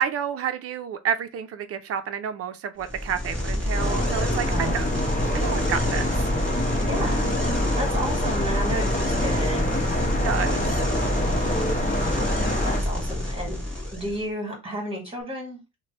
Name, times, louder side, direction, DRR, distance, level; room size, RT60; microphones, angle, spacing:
voice 1, 0.0-4.5 4.7-4.8 5.3-6.3 10.2-10.6 12.4-12.7, right 8 dB, 55° right, 0.5 m, -29 dB
sound 1, 2.8-14.2, left 1 dB, 5° left, 1.4 m, -27 dB
sound 2, 3.8-12.8, left 1 dB, 25° left, 0.9 m, -27 dB
voice 2, 4.5-4.8 6.9-7.3 7.8-9.8 12.6-13.6 13.9-15.6, equal, 20° right, 1.6 m, -32 dB
3.1 x 2.2 x 4.0 m
cardioid pair, 140°, 29 cm